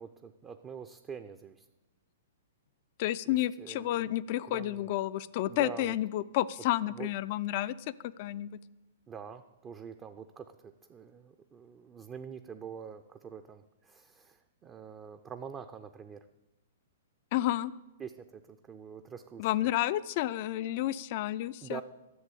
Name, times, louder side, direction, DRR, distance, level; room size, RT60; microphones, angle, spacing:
voice 1, 0.0-1.7 3.3-4.1 4.5-4.9 5.5-6.0 6.9-7.1 9.1-16.3 18.0-19.7 21.6-21.8, right 7 dB, 20° right, 7 dB, 0.5 m, -45 dB
voice 2, 3.0-7.7 8.2-8.5 17.3-17.7 19.4-21.8, left 14 dB, 45° left, 16 dB, 0.4 m, -30 dB
11.0 x 7.5 x 8.2 m, 1.0 s
figure-of-eight pair, 110°, 0 cm